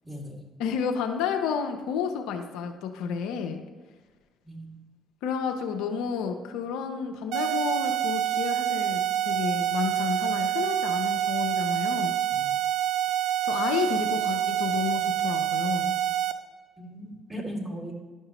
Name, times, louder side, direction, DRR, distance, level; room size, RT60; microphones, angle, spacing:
voice 1, 0.0-0.4 4.5-4.8 12.3-12.5 16.8-17.9, equal, 15° right, -1 dB, 2.1 m, -38 dB
voice 2, 0.6-3.6 5.2-12.1 13.4-15.9, left 7 dB, 80° left, 5 dB, 0.6 m, -31 dB
sound 1, 7.3-16.3, right 11 dB, 70° right, 0.4 m, -27 dB
11.0 x 5.5 x 2.9 m, 1.3 s
supercardioid pair, 65°, 0 cm